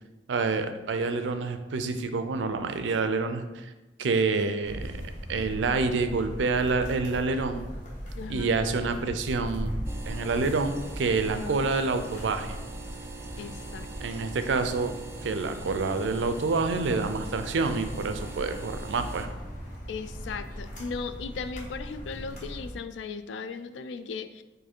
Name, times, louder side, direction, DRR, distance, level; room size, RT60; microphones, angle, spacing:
voice 1, 0.3-3.7 4.0-5.0 5.3-7.7 8.3-9.8 10.1-12.6 14.0-14.9 15.2-19.3, right 4 dB, 85° right, 9 dB, 0.4 m, -27 dB
sound 1, 4.6-22.7, equal, 45° left, 1.4 m, -39 dB
voice 2, 8.2-8.5 11.3-11.7 13.4-13.9 19.9-24.4, left 5 dB, 80° left, 11 dB, 0.3 m, -37 dB
sound 2, 9.9-19.3, right 4 dB, 15° right, 0.4 m, -44 dB
4.7 x 2.6 x 4.4 m, 1.1 s
head